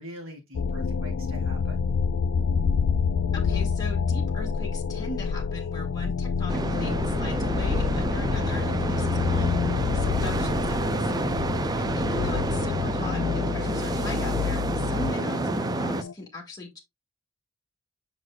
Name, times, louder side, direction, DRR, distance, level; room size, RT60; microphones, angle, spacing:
voice 1, 0.0-1.8, equal, 70° right, 3.0 m, -43 dB
sound 1, 0.5-16.1, left 6 dB, 65° left, 0.4 m, -28 dB
voice 2, 3.3-11.1 11.8-16.8, left 2 dB, 15° left, 1.8 m, -39 dB
sound 2, 6.5-16.0, right 2 dB, 20° right, 0.3 m, -29 dB
6.5 x 6.3 x 2.3 m
head